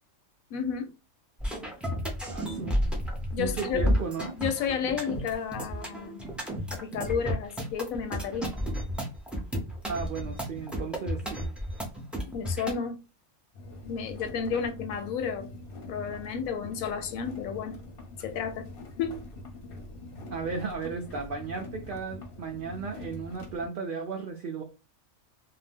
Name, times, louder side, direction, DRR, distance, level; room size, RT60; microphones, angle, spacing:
voice 1, 0.5-0.9 3.3-4.0 4.4-6.2 6.7-8.5 12.3-13.0 13.9-15.5 15.9-17.8 18.2-18.7 19.0-19.3, left 7 dB, 80° left, 1.0 m, -32 dB
sound 1, 1.4-12.8, equal, ahead, 0.3 m, -32 dB
voice 2, 2.3-2.8 3.4-4.3 9.9-11.5 14.5-14.6 20.3-24.6, right 5 dB, 75° right, 0.4 m, -35 dB
sound 2, 13.5-23.7, left 2 dB, 50° left, 0.8 m, -44 dB
2.7 x 2.1 x 3.4 m
omnidirectional pair, 1.5 m